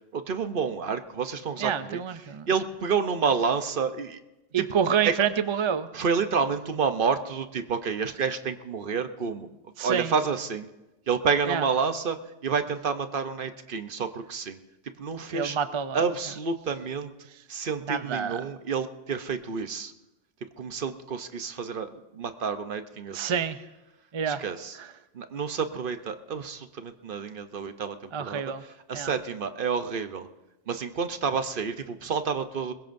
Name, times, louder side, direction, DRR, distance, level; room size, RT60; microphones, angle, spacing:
voice 1, 0.1-4.2 4.6-4.7 5.0-5.1 5.9-9.5 9.8-10.7 11.1-12.2 12.4-14.6 15.0-15.6 15.9-17.1 17.5-19.9 20.6-23.3 24.3-24.8 25.1-30.3 30.7-32.7, right 5 dB, 55° right, 9 dB, 0.9 m, -29 dB
voice 2, 1.6-2.5 4.5-5.9 9.8-10.1 11.5-11.6 15.3-16.0 17.9-18.4 23.1-23.6 24.1-24.4 28.1-28.6 28.9-29.1, right 7 dB, 40° right, 11 dB, 0.4 m, -27 dB
21.5 x 21.0 x 2.6 m, 1.0 s
omnidirectional pair, 1.1 m